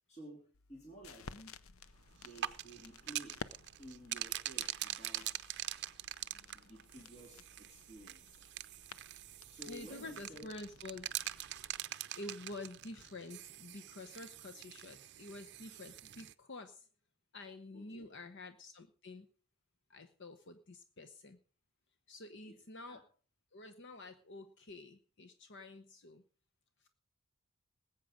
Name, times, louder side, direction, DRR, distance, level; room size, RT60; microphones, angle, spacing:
voice 1, 0.1-1.4 2.2-3.5 3.8-5.7 6.3-8.4 9.5-10.5 17.7-18.1 22.5-22.6 22.9-23.0, right 1 dB, 35° left, 0 dB, 3.1 m, -54 dB
sound 1, 0.5-11.8, left 5 dB, 85° left, 0.7 m, -55 dB
sound 2, 2.2-16.3, right 13 dB, 55° right, 0.6 m, -44 dB
voice 2, 9.6-11.2 12.1-16.9 17.3-19.3 19.9-21.4 22.1-23.0 23.5-26.2 26.8-26.9, left 2 dB, 60° left, 8 dB, 0.9 m, -49 dB
19.5 x 8.5 x 5.0 m, 0.41 s
head